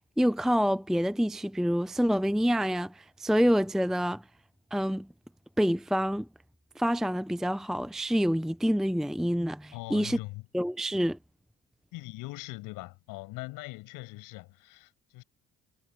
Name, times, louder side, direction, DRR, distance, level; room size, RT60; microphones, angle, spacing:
voice 1, 0.2-4.2 4.7-5.1 5.6-6.3 6.8-10.2 10.5-11.2, equal, ahead, 0.6 m, -27 dB
voice 2, 9.7-10.4 11.9-15.2, left 21 dB, 85° left, 6.7 m, -41 dB
supercardioid pair, 60°, 32 cm